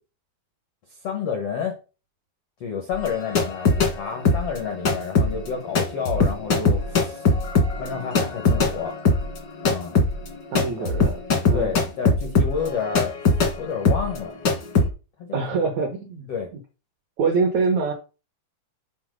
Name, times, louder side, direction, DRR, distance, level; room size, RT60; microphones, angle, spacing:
voice 1, 1.0-1.8 2.6-7.2 7.8-9.0 9.6-10.0 10.8-10.9 11.5-13.1 13.6-14.3 15.2-15.6 16.3-16.5, left 6 dB, 90° left, 1.3 m, -30 dB
sound 1, 2.9-4.0 4.2-13.6 13.8-14.2 14.4-14.9, left 3 dB, 70° left, 1.0 m, -21 dB
voice 2, 10.5-11.2 11.5-11.7 15.3-16.3 17.2-17.9, right 4 dB, 80° right, 1.6 m, -24 dB
7.1 x 3.9 x 5.1 m
omnidirectional pair, 4.6 m